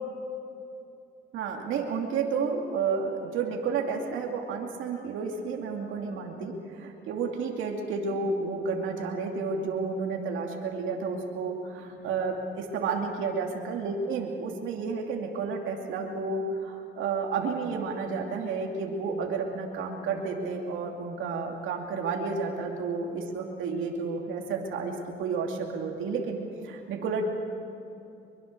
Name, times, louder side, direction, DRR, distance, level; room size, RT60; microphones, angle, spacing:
voice 1, 1.3-27.3, right 4 dB, 85° right, 1 dB, 2.6 m, -31 dB
23.5 x 23.0 x 6.8 m, 2.7 s
cardioid pair, 90°, 20 cm